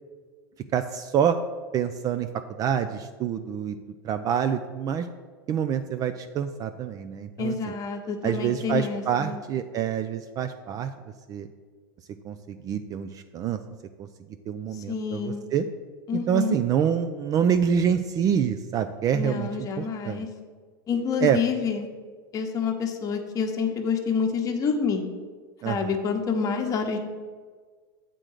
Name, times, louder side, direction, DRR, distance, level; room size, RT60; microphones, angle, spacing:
voice 1, 0.7-1.4 1.7-2.3 2.6-3.8 4.0-5.1 5.5-7.7 8.2-10.9 11.3-11.5 12.2-13.6 14.0-14.1 14.5-15.7 16.1-20.3 21.2-21.4 25.6-25.9, right 8 dB, 30° right, 9 dB, 0.3 m, -26 dB
voice 2, 7.4-9.4 14.9-15.4 16.1-16.6 19.1-20.3 20.9-21.9 22.3-25.0 25.6-27.0, left 6 dB, 30° left, 3 dB, 1.0 m, -28 dB
7.5 x 3.8 x 6.4 m, 1.5 s
hypercardioid pair, 120°, 12 cm